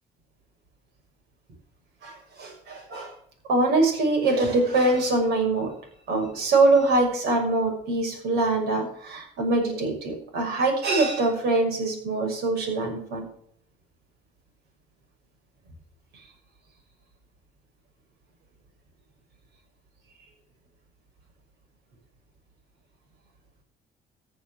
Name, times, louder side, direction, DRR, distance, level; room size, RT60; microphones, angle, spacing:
voice 1, 2.0-3.1 3.5-5.7 6.1-13.2, right 2 dB, 75° right, 3 dB, 6.3 m, -23 dB
15.0 x 7.5 x 6.4 m, 0.64 s
cardioid pair, 110°, 17 cm